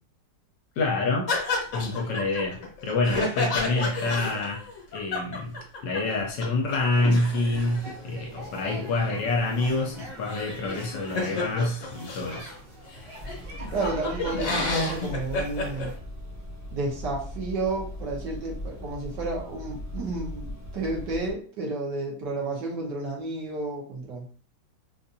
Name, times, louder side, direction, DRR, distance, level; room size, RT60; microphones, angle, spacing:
voice 1, 0.8-1.3 1.7-4.6 4.9-5.6 5.8-12.5, left 2 dB, 70° left, 1 dB, 1.3 m, -27 dB
sound 1, 1.3-6.1 6.4-6.5 6.7-12.4 12.9-13.0 13.3-15.9, left 3 dB, 50° left, 1.3 m, -31 dB
sound 2, 6.7-16.0, equal, 45° right, 1.3 m, -44 dB
sound 3, 13.2-21.3, left 1 dB, 15° right, 0.7 m, -39 dB
voice 2, 13.7-15.9 16.7-24.3, right 2 dB, 70° right, -2 dB, 1.6 m, -31 dB
4.1 x 2.5 x 2.6 m, 0.42 s
omnidirectional pair, 2.0 m